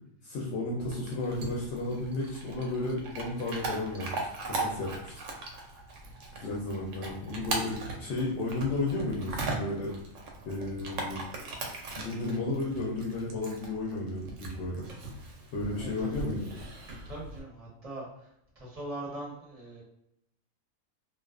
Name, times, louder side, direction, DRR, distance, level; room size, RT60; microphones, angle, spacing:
voice 1, 0.2-5.2 5.5-5.6 6.3-9.9 10.4-11.2 12.0-14.9 15.5-16.7, left 2 dB, 60° left, -4 dB, 0.8 m, -33 dB
Chewing mastication / Dog, 0.9-17.4, right 2 dB, 70° right, 0.8 m, -39 dB
voice 2, 15.8-16.6 16.9-18.3 18.6-19.8, right 1 dB, 35° right, -4 dB, 0.6 m, -42 dB
2.4 x 2.2 x 2.3 m, 0.79 s
omnidirectional pair, 1.5 m